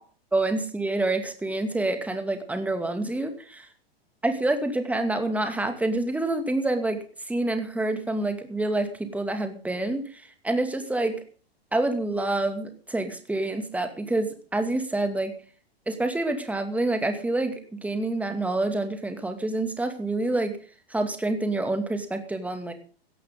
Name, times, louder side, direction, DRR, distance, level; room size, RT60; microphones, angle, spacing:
voice 1, 0.3-3.7 4.2-7.0 7.3-11.2 11.7-15.3 15.9-20.6 20.9-22.7, right 2 dB, 5° right, 7 dB, 2.4 m, -27 dB
17.5 x 13.0 x 3.9 m, 0.40 s
figure-of-eight pair, 105°, 31 cm